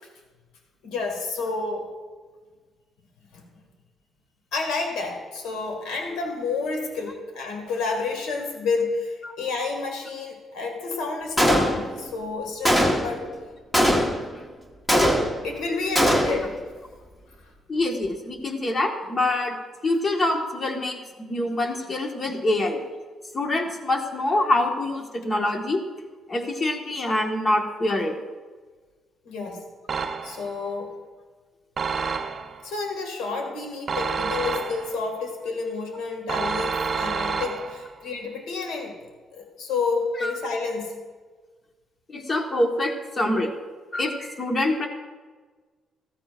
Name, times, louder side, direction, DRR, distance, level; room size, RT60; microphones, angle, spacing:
voice 1, 0.8-1.9 3.3-3.4 4.5-13.2 15.4-16.6 17.4-17.5 29.2-29.6 30.2-30.9 32.6-39.0 39.3-41.0, left 4 dB, 90° left, 2 dB, 2.2 m, -30 dB
Gunshot gunfire, 11.4-12.1 12.7-13.2 13.7-14.4 14.9-15.6 16.0-16.5, equal, 15° left, 1.6 m, -21 dB
voice 2, 17.7-19.6 19.8-22.8 23.3-25.8 26.3-28.2 40.2-40.3 42.1-43.5 43.9-44.9, left 1 dB, 35° left, 2 dB, 1.7 m, -25 dB
sound 1, 29.9-30.6 31.8-32.7 33.9-35.1 36.3-37.9, right 5 dB, 45° right, 0.8 m, -29 dB
14.5 x 14.5 x 2.6 m, 1.4 s
cardioid pair, 90°, 0 cm